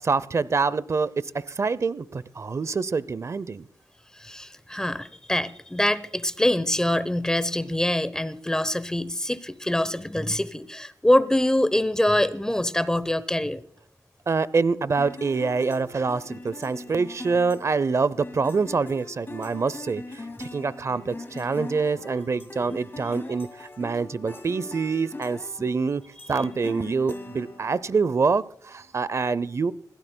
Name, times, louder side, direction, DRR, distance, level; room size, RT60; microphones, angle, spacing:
voice 1, 0.0-3.7 14.3-26.0 26.3-29.7, right 4 dB, 45° right, 0.6 m, -26 dB
voice 2, 4.2-13.6, left 1 dB, 10° left, 0.9 m, -24 dB
sound 1, 15.0-28.2, left 2 dB, 35° left, 2.0 m, -41 dB
26.0 x 16.0 x 2.2 m
cardioid pair, 75°, 7 cm